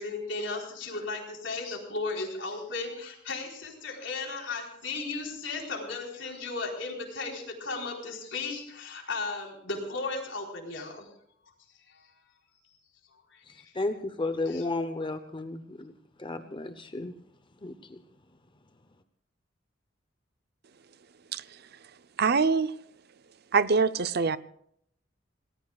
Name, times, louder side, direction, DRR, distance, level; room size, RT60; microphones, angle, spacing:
voice 1, 0.0-11.1 11.9-12.0 13.1-13.7 14.5-14.6, left 3 dB, 75° left, 1 dB, 4.2 m, -35 dB
voice 2, 13.5-15.9 16.2-17.1 17.6-18.0, left 2 dB, 25° left, 9 dB, 0.8 m, -33 dB
voice 3, 22.2-22.7 23.5-24.4, right 5 dB, 55° right, 14 dB, 0.7 m, -24 dB
27.5 x 19.0 x 2.4 m, 0.69 s
head